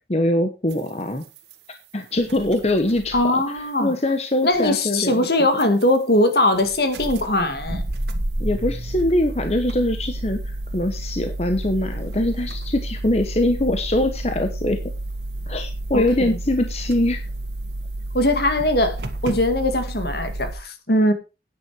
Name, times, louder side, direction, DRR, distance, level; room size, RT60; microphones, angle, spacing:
voice 1, 0.1-1.2 1.9-3.4 3.8-5.3 8.4-14.8 15.5-17.2, left 1 dB, 35° left, 1.1 m, -23 dB
sound 1, 0.7-0.8 1.2-1.5 2.2-3.4 4.5-4.7 5.6-6.0 6.2-6.3 6.5-20.6, right 1 dB, 70° right, 1.7 m, -31 dB
voice 2, 3.1-3.9 4.4-7.8 15.9-16.3 18.1-19.0 19.2-21.1, left 1 dB, 60° left, 2.0 m, -20 dB
10.5 x 9.6 x 4.9 m
head